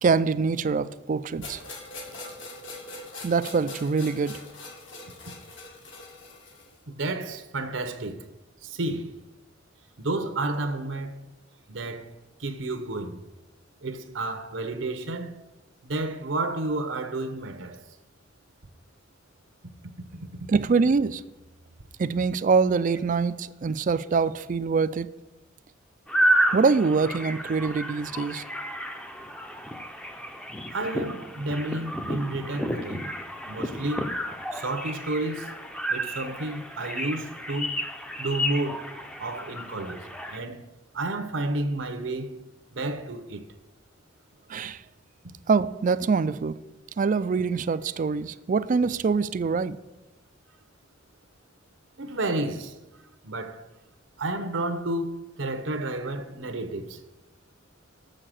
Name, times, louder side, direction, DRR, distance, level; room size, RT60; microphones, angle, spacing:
voice 1, 0.0-1.6 3.2-4.4 20.5-21.2 22.0-25.1 26.5-28.4 44.5-44.8 45.5-46.6 47.0-49.8, right 4 dB, 40° right, 0.3 m, -24 dB
sound 1, 1.4-6.8, left 2 dB, 70° left, 2.1 m, -42 dB
voice 2, 6.9-8.3 8.6-9.2 10.0-11.2 11.7-12.1 12.4-13.2 13.8-15.3 15.8-17.8 30.7-33.1 33.5-34.1 34.5-35.5 35.9-37.8 38.2-38.9 39.2-40.7 40.9-42.4 42.7-43.5 52.0-52.7 53.2-53.6 54.2-57.0, right 2 dB, 75° right, 0.9 m, -31 dB
sound 2, 26.1-40.4, right 1 dB, 5° left, 0.6 m, -31 dB
7.1 x 6.5 x 7.6 m
head